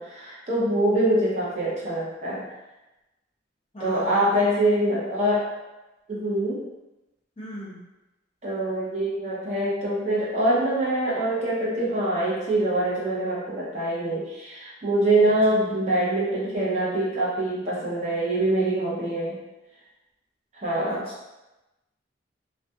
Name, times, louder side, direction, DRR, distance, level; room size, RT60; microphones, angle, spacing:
voice 1, 0.0-2.4 3.8-5.5 6.1-6.6 8.4-19.4 20.6-21.0, right 1 dB, 35° right, -6 dB, 0.6 m, -24 dB
voice 2, 3.7-4.5 7.4-7.8 15.1-15.3 20.8-21.1, left 1 dB, 30° left, -7 dB, 0.6 m, -37 dB
2.4 x 2.2 x 2.6 m, 1.0 s
head